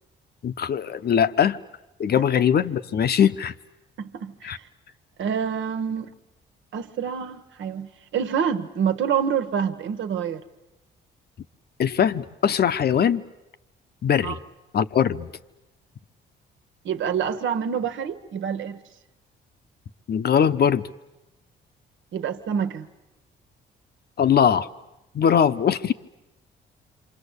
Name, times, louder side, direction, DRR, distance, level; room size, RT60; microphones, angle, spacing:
voice 1, 0.4-1.6 2.0-3.5 4.4-4.6 11.8-13.2 14.0-14.4 14.7-15.3 20.1-20.8 24.2-24.7 25.1-25.9, left 8 dB, 55° left, 1.0 m, -21 dB
voice 2, 4.0-4.6 5.2-6.1 6.7-10.4 14.2-14.4 16.8-18.8 22.1-22.9, right 7 dB, 75° right, 1.5 m, -27 dB
27.5 x 25.5 x 8.3 m
cardioid pair, 90°, 20 cm